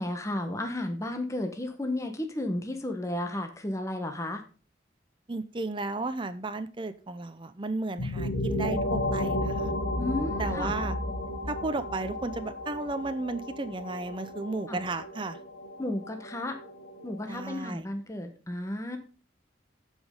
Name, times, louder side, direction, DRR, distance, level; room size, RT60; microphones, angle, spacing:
voice 1, 0.0-4.4 10.0-10.7 14.7-14.8 15.8-16.6 17.0-19.0, left 1 dB, 15° left, 5 dB, 1.0 m, -33 dB
voice 2, 5.3-9.7 10.4-11.0 11.5-15.4 17.3-17.9, right 2 dB, 25° right, 10 dB, 0.6 m, -34 dB
sound 1, 8.0-17.5, left 1 dB, 90° left, 2.4 m, -33 dB
15.0 x 5.4 x 3.7 m, 0.36 s
head